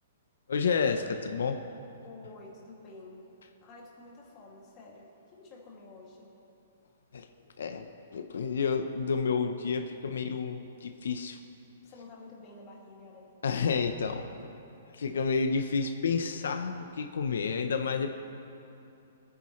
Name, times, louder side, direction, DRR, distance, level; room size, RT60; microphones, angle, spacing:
voice 1, 0.5-1.6 7.1-7.3 7.6-11.4 13.4-14.2 14.9-18.1, left 5 dB, 85° left, 6 dB, 0.8 m, -30 dB
voice 2, 2.0-3.3 3.6-6.3 11.8-13.3, left 2 dB, 20° left, -4 dB, 2.4 m, -50 dB
24.5 x 9.7 x 3.2 m, 2.8 s
hypercardioid pair, 170°, 0 cm